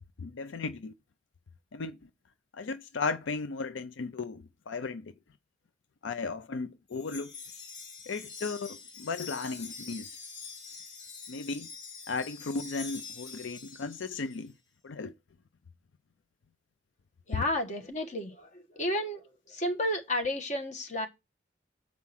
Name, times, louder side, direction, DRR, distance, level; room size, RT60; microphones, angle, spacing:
voice 1, 0.2-0.9 1.7-2.0 2.5-5.1 6.0-7.3 8.1-10.1 11.3-11.7 12.1-14.5 14.8-15.1 17.3-17.4, left 4 dB, 85° left, 0.5 m, -35 dB
Wind chime, 6.9-14.4, left 5 dB, 60° left, 2.3 m, -45 dB
voice 2, 17.3-19.2 19.5-21.1, left 1 dB, 40° left, 1.3 m, -32 dB
7.2 x 4.7 x 5.7 m
head